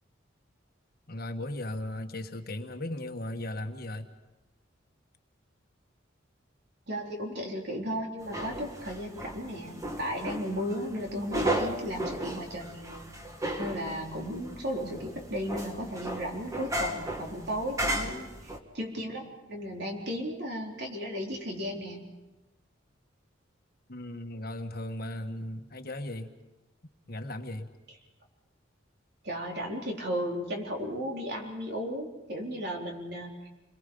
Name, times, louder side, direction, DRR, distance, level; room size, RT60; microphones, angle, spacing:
voice 1, 1.1-4.1 23.9-26.3 27.1-27.7, left 1 dB, 50° left, 6 dB, 1.5 m, -37 dB
voice 2, 6.9-13.1 13.6-22.0 29.2-33.5, equal, 55° right, 0 dB, 3.9 m, -35 dB
sound 1, 8.3-18.6, right 1 dB, 15° right, 1.7 m, -35 dB
29.0 x 22.0 x 5.4 m, 1.1 s
head